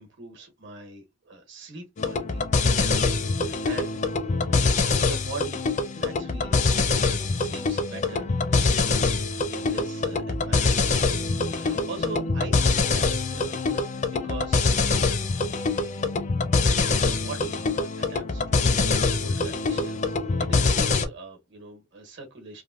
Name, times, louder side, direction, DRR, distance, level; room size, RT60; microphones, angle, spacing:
voice 1, 0.0-2.5 2.8-4.1 4.9-5.6 5.9-8.8 9.5-10.9 11.4-14.7 17.0-18.8 19.2-22.6, right 3 dB, 60° right, 1.1 m, -42 dB
sound 1, 2.0-21.0, left 3 dB, 40° left, 0.4 m, -24 dB
3.3 x 2.1 x 2.4 m
head